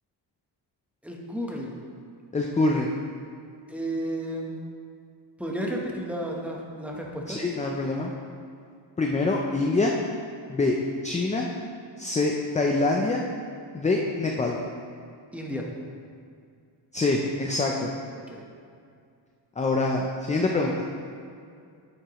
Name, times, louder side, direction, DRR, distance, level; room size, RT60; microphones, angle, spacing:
voice 1, 1.0-1.7 3.7-4.6 5.4-7.4 15.3-15.7 18.3-18.4, right 1 dB, 5° right, -1 dB, 0.9 m, -32 dB
voice 2, 2.3-2.9 7.3-8.1 9.0-9.9 10.5-10.8 11.0-11.5 12.0-13.2 13.7-14.6 16.9-17.9 19.6-20.8, left 3 dB, 15° left, 0 dB, 0.4 m, -25 dB
10.0 x 8.0 x 3.0 m, 2.4 s
wide cardioid pair, 160°, 45 cm